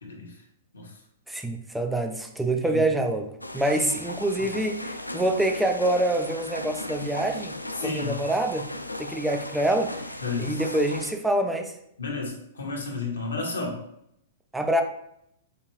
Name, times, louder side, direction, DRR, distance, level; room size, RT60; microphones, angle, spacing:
voice 1, 0.0-0.4 0.7-1.0 2.7-2.8 7.7-8.2 10.2-10.6 12.0-13.8, left 4 dB, 70° left, 0 dB, 1.1 m, -32 dB
voice 2, 1.3-8.7 9.0-9.9 10.4-11.7 14.5-14.8, right 1 dB, 5° right, 4 dB, 0.4 m, -26 dB
sound 1, 3.4-11.1, left 1 dB, 90° left, 0.3 m, -37 dB
4.4 x 2.6 x 3.1 m, 0.76 s
figure-of-eight pair, 105°, 0 cm